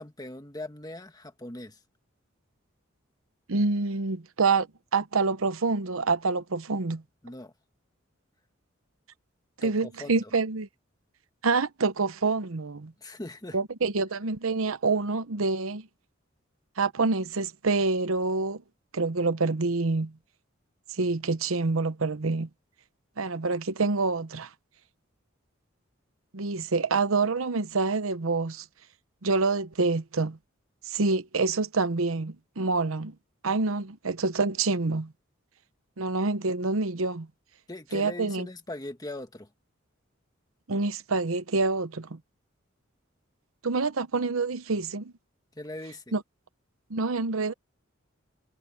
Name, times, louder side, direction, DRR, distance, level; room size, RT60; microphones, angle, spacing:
voice 1, 0.0-1.8 7.2-7.5 9.6-10.3 13.0-13.6 37.7-39.5 45.5-46.1, left 1 dB, 20° left, 1.7 m, -40 dB
voice 2, 3.5-4.7 4.9-7.0 9.6-10.7 11.4-12.9 13.5-15.9 16.8-18.6 18.9-20.1 20.9-22.5 23.2-24.5 26.3-28.6 29.2-30.4 30.8-33.1 33.4-35.1 36.0-37.3 37.9-38.5 40.7-42.2 43.6-45.1 46.1-46.2 46.9-47.5, right 3 dB, 90° right, 0.9 m, -27 dB
head